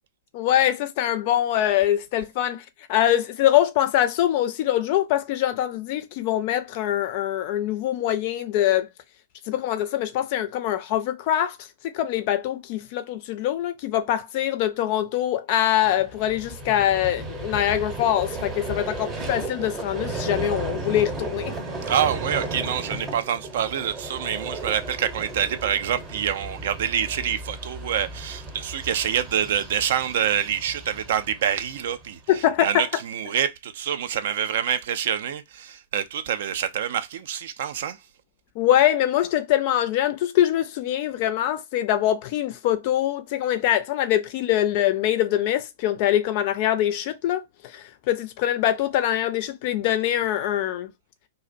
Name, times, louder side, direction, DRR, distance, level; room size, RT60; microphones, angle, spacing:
voice 1, 0.3-8.9 9.5-11.6 11.8-21.5 32.3-32.8 38.6-50.9, left 12 dB, 45° left, 0.4 m, -23 dB
Vehicle, 15.8-32.2, right 2 dB, 20° right, 0.7 m, -35 dB
voice 2, 21.9-32.2 32.6-38.0, right 9 dB, 55° right, 0.3 m, -26 dB
2.4 x 2.0 x 2.5 m
figure-of-eight pair, 105°, 0 cm